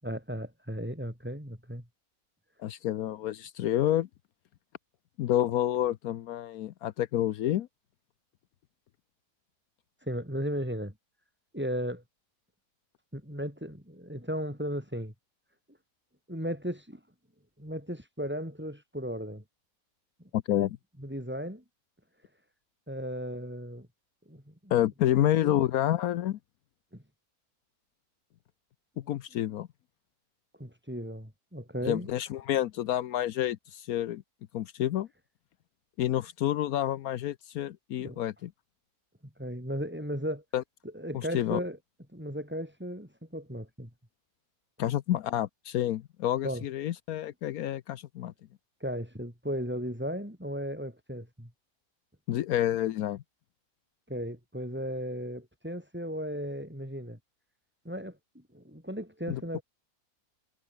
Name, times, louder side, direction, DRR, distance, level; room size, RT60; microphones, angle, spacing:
voice 1, 0.0-1.9 10.0-10.9 11.5-12.0 13.1-15.1 16.3-17.0 17.6-19.4 20.2-20.3 21.0-21.6 22.9-23.9 24.3-24.7 25.2-25.6 26.9-27.0 30.6-32.1 38.0-38.2 39.4-40.4 40.9-41.8 42.1-43.9 46.4-46.7 48.8-51.5 54.1-57.2 57.9-59.6, equal, 5° right, 6.9 m, -36 dB
voice 2, 2.6-4.1 5.2-7.7 20.3-20.8 24.7-26.4 29.1-29.7 31.8-34.2 34.5-35.1 36.0-38.5 40.5-40.6 41.1-41.6 44.8-48.3 52.3-53.2 59.3-59.4, left 12 dB, 75° left, 1.2 m, -29 dB
omnidirectional pair, 1.6 m